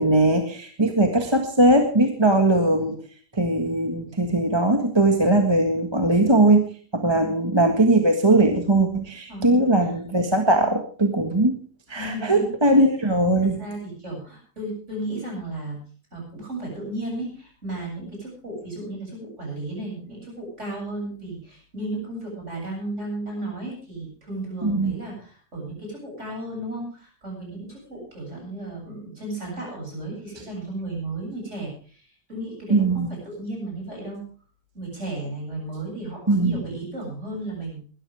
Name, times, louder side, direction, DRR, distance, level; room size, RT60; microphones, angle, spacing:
voice 1, 0.0-3.0 3.3-6.6 6.9-11.6 11.9-13.6 24.6-24.9 32.7-33.1 36.3-36.6, right 2 dB, 20° right, 4 dB, 1.6 m, -20 dB
voice 2, 9.3-10.1 11.9-12.5 13.4-15.8 16.1-32.0 32.3-34.2 34.7-37.8, right 2 dB, 50° right, -1 dB, 8.4 m, -34 dB
21.5 x 13.5 x 3.5 m, 0.42 s
omnidirectional pair, 1.6 m